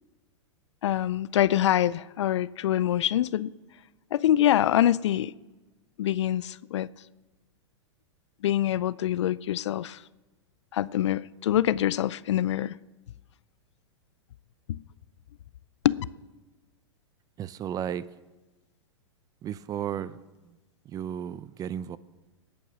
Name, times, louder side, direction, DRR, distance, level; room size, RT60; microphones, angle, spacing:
voice 1, 0.8-3.5 4.1-5.3 6.0-6.9 8.4-10.0 10.7-12.7 14.7-14.8 15.8-16.0, left 12 dB, 70° left, 0.5 m, -25 dB
voice 2, 17.4-18.1 19.4-20.2 20.4-20.6 20.9-22.0, right 9 dB, 25° right, 0.5 m, -34 dB
19.5 x 8.6 x 6.2 m
hypercardioid pair, 110°, 16 cm